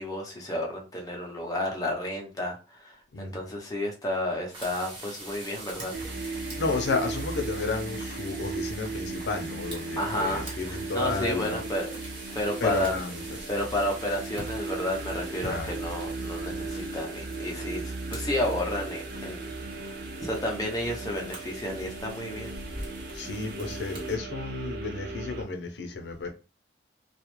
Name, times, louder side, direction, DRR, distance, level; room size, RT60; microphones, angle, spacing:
voice 1, 0.0-5.9 10.0-11.9 12.3-12.9 13.5-19.5 19.8-22.5, left 1 dB, 20° left, 0.6 m, -31 dB
voice 2, 3.1-3.5 6.6-11.6 12.6-13.4 15.4-15.7 23.1-26.3, left 3 dB, 75° left, 0.5 m, -32 dB
sound 1, 4.5-24.2, right 1 dB, 30° right, 0.9 m, -44 dB
sound 2, 5.9-25.4, right 3 dB, 60° right, 0.4 m, -37 dB
2.3 x 2.0 x 3.0 m
head